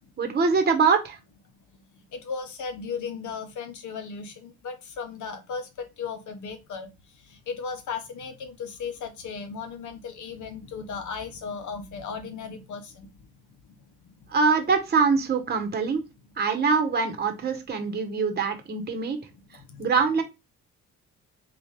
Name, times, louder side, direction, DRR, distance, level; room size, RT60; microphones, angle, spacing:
voice 1, 0.2-1.2 14.3-16.0 16.4-19.2 19.8-20.2, right 5 dB, 35° right, 0.9 m, -23 dB
voice 2, 1.7-13.3 13.6-13.8 14.1-14.3 19.5-19.9, left 5 dB, 75° left, 1.0 m, -36 dB
3.9 x 2.9 x 3.3 m
cardioid pair, 90°, 30 cm